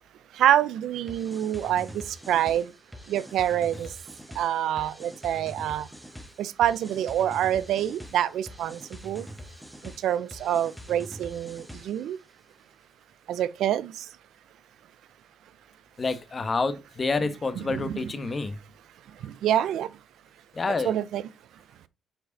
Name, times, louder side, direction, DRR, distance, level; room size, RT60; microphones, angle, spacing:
voice 1, 0.4-1.9 2.3-2.7 3.1-3.9 4.4-5.9 6.4-9.2 10.0-12.2 13.3-13.9 17.7-18.0 19.2-19.9 20.8-21.2, right 11 dB, 80° right, 0.6 m, -26 dB
sound 1, 1.1-12.1, equal, ahead, 1.5 m, -44 dB
voice 2, 16.0-18.6 20.5-20.9, left 3 dB, 35° left, 1.2 m, -28 dB
7.8 x 4.7 x 4.0 m
cardioid pair, 90°, 0 cm